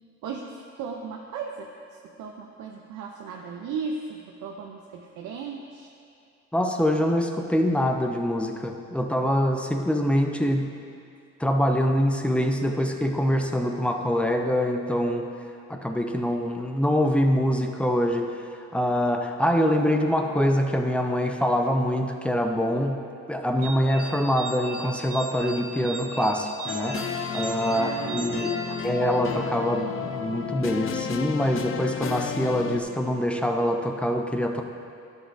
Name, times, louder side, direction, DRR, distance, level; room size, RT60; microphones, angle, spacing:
voice 1, 0.2-5.9 27.7-28.8, right 5 dB, 85° right, 0 dB, 0.6 m, -36 dB
voice 2, 6.5-10.7 11.4-15.3 15.7-18.3 18.7-23.0 23.3-28.5 28.8-34.6, equal, 5° left, 3 dB, 0.6 m, -24 dB
sound 1, 23.6-29.4, right 3 dB, 50° right, 1.5 m, -38 dB
sound 2, 26.7-32.8, left 7 dB, 45° left, 0.5 m, -32 dB
12.0 x 7.4 x 2.6 m, 2.5 s
cardioid pair, 90°, 30 cm